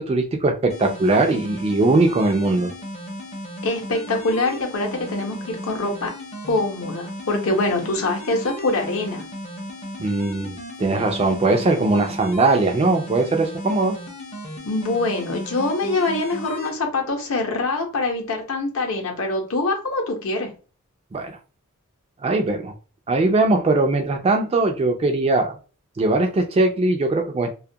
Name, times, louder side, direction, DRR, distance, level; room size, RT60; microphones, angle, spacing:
voice 1, 0.0-2.7 10.0-14.0 21.1-21.4 22.2-22.7 23.1-25.6 26.0-27.5, right 2 dB, 25° right, 0.3 m, -20 dB
sound 1, 0.7-16.7, equal, 30° left, 0.5 m, -35 dB
voice 2, 3.6-6.1 6.5-9.2 14.6-20.5, left 2 dB, 65° left, 0.7 m, -24 dB
2.3 x 2.1 x 2.6 m
head